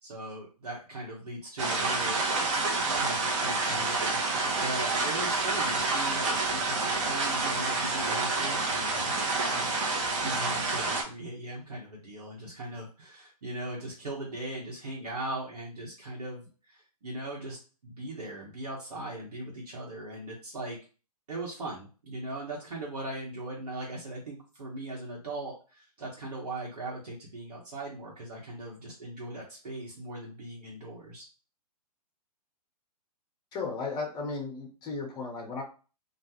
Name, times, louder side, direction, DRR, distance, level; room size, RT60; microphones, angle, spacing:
voice 1, 0.0-2.2 2.9-9.1 9.4-9.7 10.1-20.8 21.3-31.3, right 1 dB, 75° right, -4 dB, 1.3 m, -39 dB
sound 1, 1.6-11.0, right 3 dB, 50° right, 0.8 m, -28 dB
voice 2, 33.5-35.6, left 4 dB, 20° left, 1 dB, 0.8 m, -35 dB
2.4 x 2.4 x 3.0 m, 0.35 s
figure-of-eight pair, 120°, 21 cm